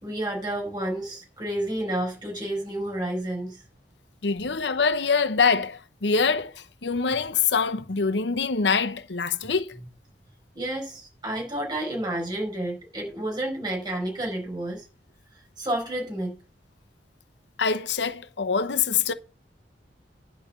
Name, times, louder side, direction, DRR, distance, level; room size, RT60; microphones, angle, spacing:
voice 1, 0.0-3.6 10.5-14.8 15.3-16.4, right 1 dB, 25° right, 5.0 m, -30 dB
voice 2, 4.2-9.8 17.6-19.1, left 5 dB, 75° left, 0.9 m, -24 dB
11.0 x 5.3 x 7.5 m
head